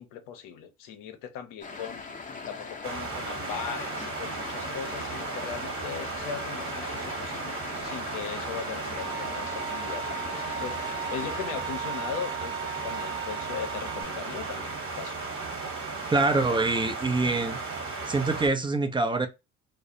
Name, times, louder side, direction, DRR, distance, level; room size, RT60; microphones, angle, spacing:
voice 1, 0.0-15.2, left 8 dB, 60° left, 0.7 m, -39 dB
sound 1, 1.6-11.5, left 4 dB, 20° left, 0.7 m, -41 dB
sound 2, 2.8-18.5, right 4 dB, 35° right, 1.2 m, -35 dB
Bowed string instrument, 9.0-14.0, right 8 dB, 60° right, 0.6 m, -37 dB
voice 2, 16.1-17.6 18.1-19.3, right 3 dB, 15° right, 0.5 m, -25 dB
2.3 x 2.1 x 2.7 m
hypercardioid pair, 65°, 36 cm